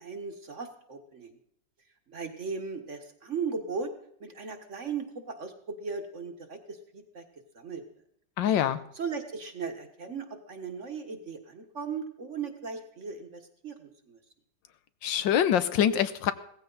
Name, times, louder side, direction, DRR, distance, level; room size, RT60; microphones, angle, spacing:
voice 1, 0.0-1.4 2.1-3.9 4.2-5.5 5.8-7.2 7.5-7.8 8.9-14.2, right 5 dB, 40° right, 6 dB, 1.7 m, -37 dB
voice 2, 8.4-8.8 15.0-16.3, left 9 dB, 80° left, 12 dB, 1.6 m, -24 dB
17.5 x 15.0 x 4.0 m, 0.69 s
omnidirectional pair, 2.0 m